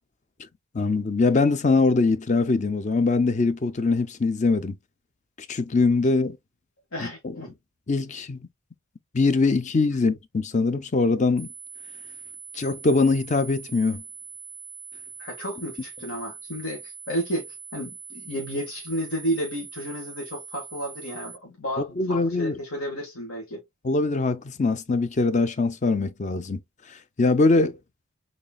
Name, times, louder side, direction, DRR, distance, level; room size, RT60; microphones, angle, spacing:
voice 1, 0.7-4.8 5.5-6.4 7.0-7.1 7.9-8.4 9.1-11.5 12.5-14.0 21.8-22.6 23.8-26.6 27.2-27.8, left 3 dB, 35° left, 0.5 m, -22 dB
voice 2, 6.9-7.5 15.2-23.6, equal, 75° left, 1.6 m, -32 dB
sound 1, 11.4-21.4, right 6 dB, 15° left, 0.9 m, -42 dB
6.5 x 3.2 x 2.2 m
head